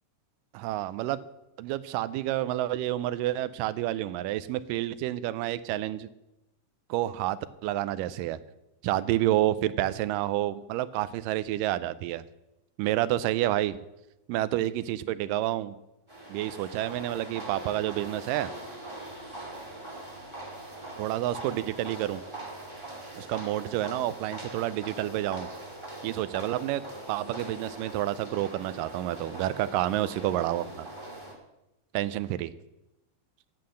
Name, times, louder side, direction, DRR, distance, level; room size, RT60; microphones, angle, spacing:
voice 1, 0.5-1.2 1.6-6.1 6.9-8.4 8.8-12.2 12.8-13.8 14.3-15.8 16.3-18.5 21.0-22.2 23.2-25.5 26.0-30.9 31.9-32.5, right 14 dB, 85° right, 15 dB, 2.2 m, -29 dB
sound 1, 16.1-31.3, right 1 dB, 10° right, 1.8 m, -42 dB
9.3 x 8.7 x 7.6 m, 0.94 s
omnidirectional pair, 3.8 m